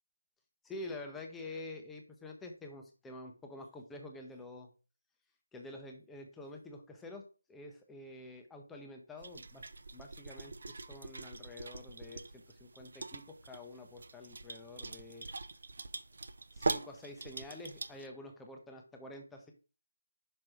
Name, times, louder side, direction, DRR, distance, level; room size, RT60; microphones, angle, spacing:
voice 1, 0.6-4.7 5.5-7.2 7.5-15.3 16.5-19.5, left 2 dB, 5° left, 2 dB, 0.7 m, -48 dB
sound 1, 9.2-18.1, right 3 dB, 55° right, 0.5 m, -42 dB
6.0 x 4.3 x 4.8 m, 0.35 s
figure-of-eight pair, 155°, 0 cm